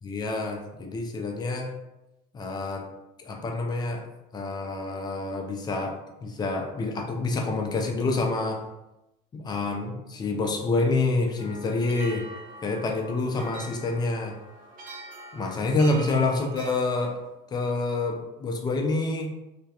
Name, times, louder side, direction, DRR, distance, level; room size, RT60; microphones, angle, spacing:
voice 1, 0.0-1.7 2.3-2.9 3.2-4.1 4.3-8.6 9.3-12.3 12.6-14.4 15.3-17.2 17.5-19.3, left 3 dB, 20° left, 3 dB, 0.4 m, -27 dB
sound 1, 11.4-16.8, right 2 dB, 45° right, 0.5 m, -44 dB
2.3 x 2.1 x 2.8 m, 0.94 s
cardioid pair, 125°, 19 cm